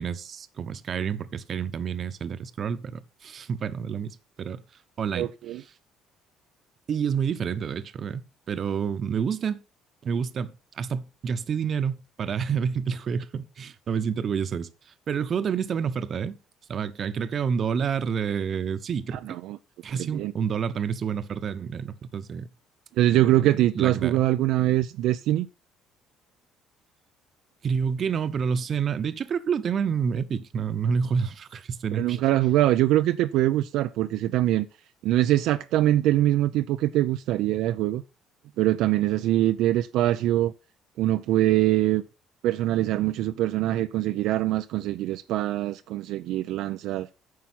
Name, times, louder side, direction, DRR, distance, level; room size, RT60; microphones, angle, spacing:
voice 1, 0.0-4.6 5.0-5.3 6.9-9.6 10.0-14.7 15.1-16.4 16.7-19.4 19.8-22.5 23.1-24.2 24.6-24.7 27.6-32.2, right 6 dB, 45° right, 1.0 m, -29 dB
voice 2, 5.1-5.6 19.2-19.6 19.9-20.3 23.0-25.5 31.9-34.7 35.0-38.0 38.6-40.5 41.0-42.0 42.4-47.1, right 14 dB, 80° right, 0.5 m, -23 dB
9.6 x 5.7 x 5.8 m
cardioid pair, 100°, 0 cm